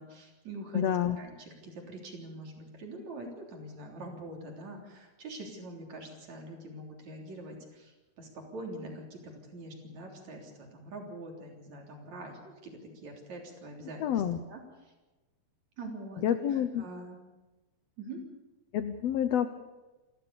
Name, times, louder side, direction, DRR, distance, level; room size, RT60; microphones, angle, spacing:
voice 1, 0.0-14.9 15.8-16.2 16.5-17.2 18.0-18.2, right 1 dB, 55° right, 1 dB, 4.6 m, -44 dB
voice 2, 0.7-1.2 14.0-14.4 16.2-16.8 18.7-19.5, left 9 dB, 85° left, 10 dB, 1.4 m, -28 dB
28.5 x 13.5 x 6.9 m, 1.1 s
omnidirectional pair, 4.0 m